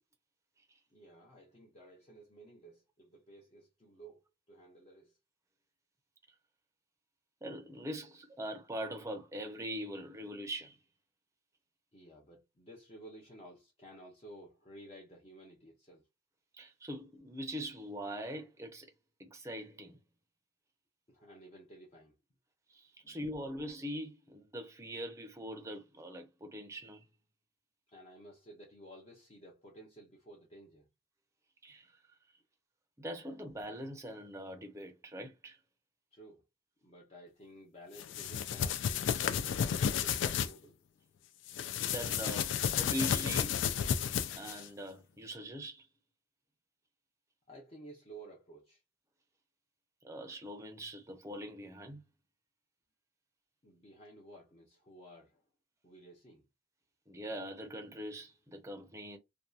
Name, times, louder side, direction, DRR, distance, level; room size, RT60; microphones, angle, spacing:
voice 1, 0.9-5.2 11.9-16.0 21.1-22.1 23.0-23.2 27.9-30.9 36.1-36.4 36.8-40.8 47.5-48.8 53.6-55.4 55.8-56.5, right 1 dB, 35° left, 0.7 m, -54 dB
voice 2, 7.4-10.8 16.6-18.9 19.2-20.0 22.7-27.0 31.6-31.9 33.0-35.6 41.9-43.6 44.3-45.9 50.0-52.0 57.1-59.2, equal, 15° right, 0.5 m, -42 dB
sound 1, 38.0-40.5 41.5-44.7, left 8 dB, 75° left, 0.3 m, -32 dB
2.7 x 2.3 x 2.3 m
head